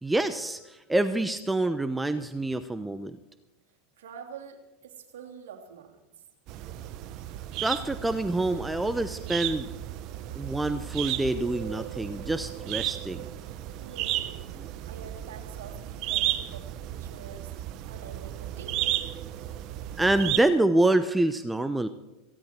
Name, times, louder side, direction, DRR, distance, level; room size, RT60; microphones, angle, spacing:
voice 1, 0.0-3.2 7.6-9.7 10.3-13.2 20.0-21.9, right 2 dB, 10° right, 11 dB, 0.8 m, -26 dB
voice 2, 4.0-6.1 13.8-14.5 14.9-17.5 17.8-18.9, right 7 dB, 70° right, 1 dB, 3.0 m, -46 dB
sound 1, 6.5-20.4, right 13 dB, 50° right, 0.8 m, -34 dB
18.0 x 16.0 x 4.5 m, 0.98 s
hypercardioid pair, 90°, 0 cm